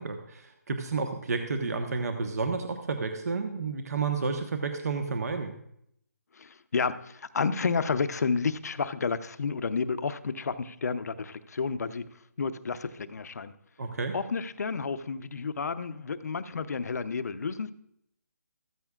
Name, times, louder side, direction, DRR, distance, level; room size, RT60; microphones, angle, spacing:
voice 1, 0.0-5.5 13.8-14.2, right 4 dB, 60° right, 5 dB, 1.2 m, -31 dB
voice 2, 6.4-12.0 12.4-13.5 14.1-17.7, left 5 dB, 60° left, 12 dB, 0.7 m, -31 dB
14.5 x 13.5 x 2.4 m, 0.75 s
hypercardioid pair, 160°, 10 cm